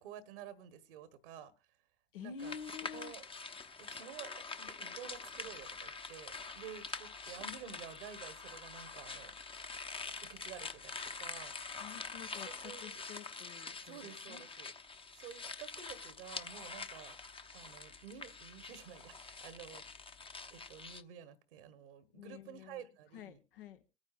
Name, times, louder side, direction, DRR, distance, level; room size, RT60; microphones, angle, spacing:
voice 1, 0.0-1.5 2.2-2.5 2.9-3.3 3.8-4.3 4.6-9.3 10.1-11.5 12.4-13.0 13.8-14.7 15.1-17.2 17.5-20.1 20.5-23.4, right 8 dB, 70° right, 1.4 m, -51 dB
voice 2, 2.1-3.1 11.8-14.0 14.3-14.4 22.1-22.8 23.1-23.8, left 7 dB, 70° left, 1.4 m, -49 dB
sound 1, 2.4-21.0, left 4 dB, 20° left, 1.0 m, -46 dB
26.0 x 9.6 x 2.5 m
figure-of-eight pair, 70°, 29 cm